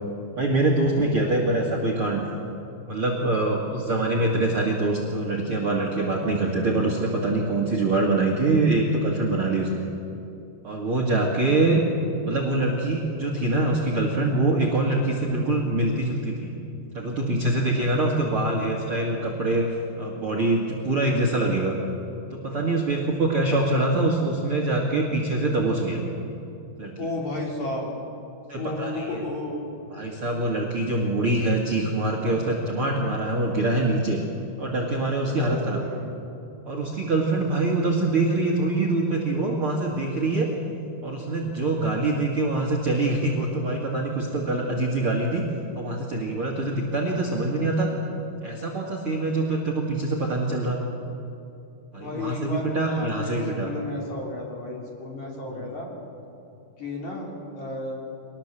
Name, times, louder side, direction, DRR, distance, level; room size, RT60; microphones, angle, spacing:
voice 1, 0.4-2.2 2.9-9.8 10.6-11.8 12.2-16.5 16.9-19.7 20.0-21.7 22.3-26.0 26.8-26.9 28.5-29.2 29.9-34.2 34.6-35.8 36.7-40.5 41.0-45.5 45.8-47.9 48.4-50.8 51.9-53.7, right 2 dB, 40° right, 0 dB, 2.2 m, -24 dB
voice 2, 27.0-27.9 28.6-29.7 35.2-36.2 47.1-48.1 52.0-55.9 56.8-57.9, left 2 dB, 45° left, -2 dB, 4.3 m, -33 dB
24.0 x 19.5 x 7.5 m, 2.8 s
omnidirectional pair, 4.9 m